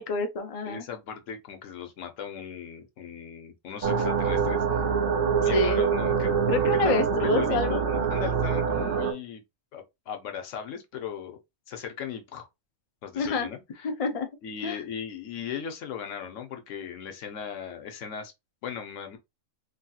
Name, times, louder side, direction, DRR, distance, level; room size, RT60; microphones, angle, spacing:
voice 1, 0.0-0.8 5.5-5.8 6.5-7.8 13.2-13.5 13.8-14.3 14.6-14.8, left 3 dB, 50° left, 0.4 m, -27 dB
voice 2, 0.7-4.9 5.4-6.5 6.8-9.4 9.7-11.4 11.7-12.5 13.0-13.9 14.4-18.3 18.6-19.2, left 8 dB, 75° left, 1.0 m, -37 dB
sound 1, 3.8-9.1, right 6 dB, 55° right, 0.7 m, -25 dB
3.1 x 2.7 x 2.3 m
omnidirectional pair, 1.3 m